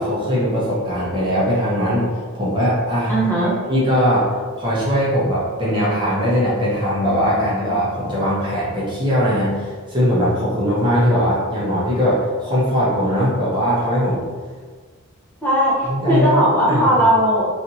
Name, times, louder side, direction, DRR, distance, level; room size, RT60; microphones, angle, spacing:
voice 1, 0.0-2.0 2.3-14.2 15.9-17.0, equal, 20° right, -8 dB, 0.9 m, -20 dB
voice 2, 3.1-3.5 15.4-17.5, equal, 10° left, -9 dB, 0.8 m, -17 dB
3.3 x 2.7 x 2.8 m, 1.5 s
head